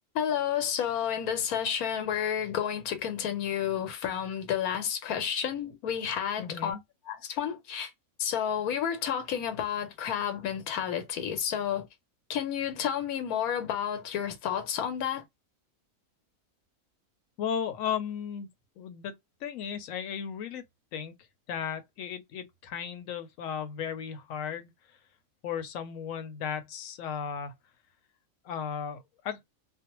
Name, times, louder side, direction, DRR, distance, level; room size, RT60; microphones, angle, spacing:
voice 1, 0.1-6.8 7.1-7.9 8.2-11.9 12.3-15.2, left 9 dB, 90° left, 1.2 m, -31 dB
voice 2, 6.4-6.8 17.4-18.5 18.8-19.1 19.4-20.6 20.9-21.2 21.5-24.7 25.4-27.5 28.4-29.4, left 7 dB, 70° left, 0.9 m, -35 dB
2.5 x 2.1 x 2.9 m
omnidirectional pair, 1.5 m